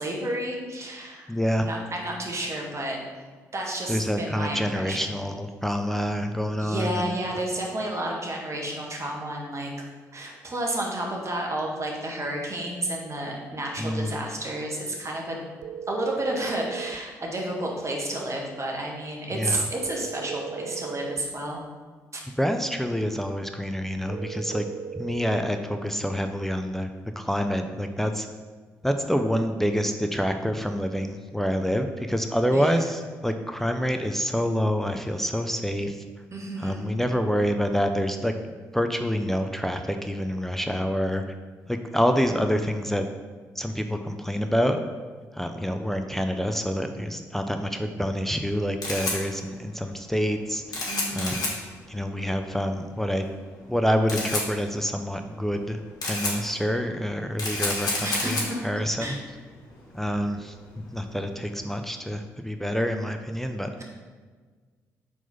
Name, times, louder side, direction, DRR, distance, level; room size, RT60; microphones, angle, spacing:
voice 1, 0.0-1.3 1.6-3.0 3.5-5.2 6.6-9.7 10.1-15.4 15.9-21.6 22.1-22.2 32.5-32.9 36.3-36.9 50.9-51.4 58.0-58.6 59.0-59.2, right 1 dB, 40° right, -1 dB, 1.6 m, -31 dB
voice 2, 1.3-1.7 3.9-7.1 13.8-14.2 19.3-19.7 22.4-24.6 24.9-26.9 27.2-28.3 28.8-36.0 36.6-38.4 38.7-41.2 41.7-43.0 43.6-44.8 45.3-50.6 51.1-51.5 51.9-53.3 53.7-58.4 58.6-59.2 59.9-60.5 60.9-63.7, equal, 5° left, 6 dB, 0.5 m, -27 dB
sound 1, 15.6-17.0 19.8-21.3 24.1-25.5, right 7 dB, 60° right, 0.4 m, -36 dB
Camera, 48.4-61.8, left 2 dB, 55° left, 1.7 m, -33 dB
4.5 x 4.0 x 5.4 m, 1.5 s
hypercardioid pair, 45°, 8 cm